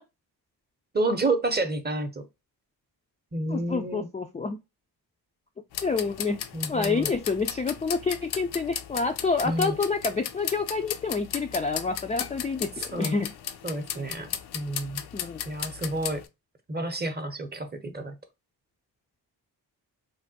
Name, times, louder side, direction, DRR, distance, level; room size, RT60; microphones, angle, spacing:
voice 1, 0.9-2.2 3.3-4.1 6.5-7.1 9.4-9.7 12.8-13.2 13.6-15.0 15.5-16.2 16.7-18.2, right 2 dB, 25° right, 0.7 m, -30 dB
voice 2, 3.5-4.6 5.8-6.4 6.7-13.3 15.1-15.4, left 4 dB, 20° left, 0.3 m, -28 dB
sound 1, 5.7-16.2, left 9 dB, 65° left, 0.5 m, -36 dB
3.2 x 2.2 x 2.6 m
supercardioid pair, 50°, 42 cm